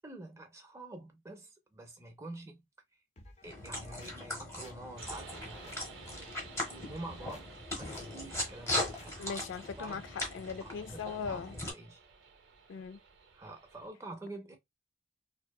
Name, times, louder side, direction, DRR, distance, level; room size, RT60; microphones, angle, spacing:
voice 1, 0.0-2.6 2.9-3.0 3.4-5.8 6.2-6.3 6.7-9.4 9.8-10.0 10.9-11.0 11.3-12.0 13.3-14.6, right 2 dB, 15° right, 0.5 m, -47 dB
sound 1, 3.2-4.1 4.6-5.8 6.1-6.4 6.9-7.4 7.9-8.1 8.3-9.1 9.5-9.6, left 1 dB, 35° left, 0.5 m, -54 dB
sound 2, 3.4-11.7, left 1 dB, 15° left, 0.8 m, -39 dB
sound 3, 5.0-13.9, right 5 dB, 75° right, 0.6 m, -54 dB
voice 2, 9.2-10.0 10.3-11.5 12.7-13.0, left 6 dB, 90° left, 0.3 m, -39 dB
2.6 x 2.1 x 2.2 m
head